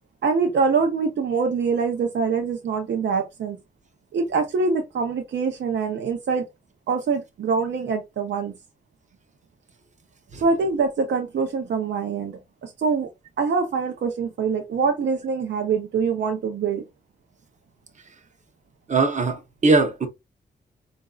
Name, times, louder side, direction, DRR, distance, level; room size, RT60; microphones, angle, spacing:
voice 1, 0.2-3.6 4.1-6.4 6.9-8.5 10.4-13.1 13.4-16.8, right 5 dB, 80° right, 0.6 m, -24 dB
voice 2, 18.9-20.1, right 3 dB, 40° right, 0.8 m, -20 dB
4.9 x 2.6 x 2.3 m
wide cardioid pair, 165°, 18 cm